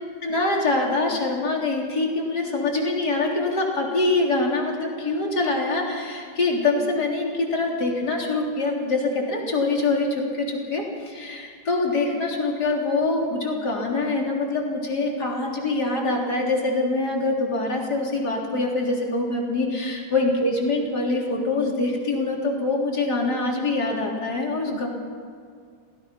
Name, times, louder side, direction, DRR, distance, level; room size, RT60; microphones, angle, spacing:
voice 1, 0.2-24.9, left 2 dB, 55° left, -1 dB, 4.1 m, -24 dB
29.5 x 19.5 x 5.8 m, 2.2 s
omnidirectional pair, 2.1 m